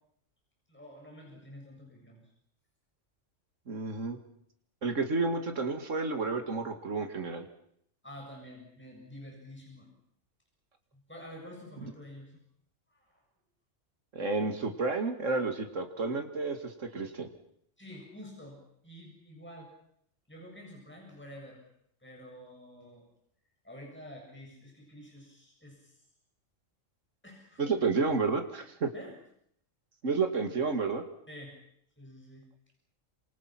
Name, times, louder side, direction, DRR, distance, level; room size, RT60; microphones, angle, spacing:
voice 1, 0.7-2.3 8.0-9.9 10.9-12.4 12.9-13.2 17.8-19.7 20.3-21.6 22.0-23.1 23.6-26.0 27.2-28.0 28.9-29.1 31.3-31.5 32.0-32.5, equal, 10° left, -1 dB, 7.1 m, -49 dB
voice 2, 3.7-4.2 4.8-7.5 14.1-17.3 27.6-28.9 30.0-31.0, right 4 dB, 85° right, 6 dB, 2.5 m, -31 dB
28.0 x 26.5 x 6.0 m, 0.69 s
omnidirectional pair, 1.3 m